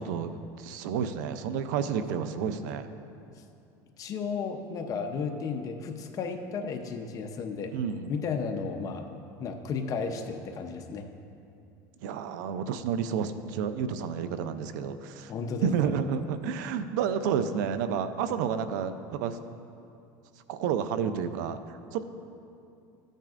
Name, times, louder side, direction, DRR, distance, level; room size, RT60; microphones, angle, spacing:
voice 1, 0.0-2.9 7.7-8.1 12.0-15.3 15.6-19.4 20.5-22.0, right 7 dB, 85° right, 11 dB, 0.5 m, -30 dB
voice 2, 4.0-7.7 8.1-11.1 15.3-15.9, left 5 dB, 35° left, 5 dB, 0.7 m, -34 dB
13.0 x 8.9 x 2.5 m, 2.6 s
supercardioid pair, 130°, 10 cm